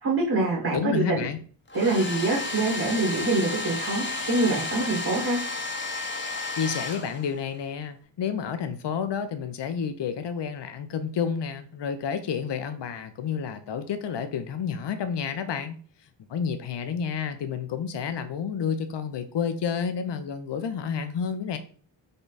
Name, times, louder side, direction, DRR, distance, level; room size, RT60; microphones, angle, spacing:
voice 1, 0.0-1.3 1.7-5.4, right 2 dB, 50° right, 2.2 m, -25 dB
voice 2, 0.7-1.4 6.6-15.8 16.3-21.6, left 7 dB, 60° left, 0.7 m, -30 dB
Domestic sounds home sounds, 1.7-7.6, left 3 dB, 25° left, 0.8 m, -32 dB
5.2 x 2.2 x 4.0 m
cardioid pair, 60°, 47 cm